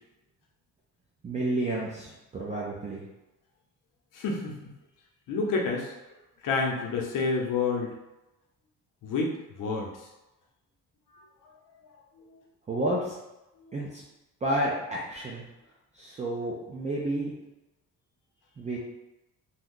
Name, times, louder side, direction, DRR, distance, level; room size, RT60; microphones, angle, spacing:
voice 1, 1.2-3.0 12.7-13.2 13.7-14.0 14.4-15.4 15.9-17.3 18.6-18.8, right 1 dB, 20° right, -5 dB, 0.3 m, -30 dB
voice 2, 4.1-4.7 5.3-5.9 6.4-7.9 9.0-9.9 12.3-12.4 13.6-13.8, left 4 dB, 65° left, 0 dB, 0.7 m, -29 dB
2.6 x 2.3 x 3.7 m, 0.97 s
cardioid pair, 160°, 34 cm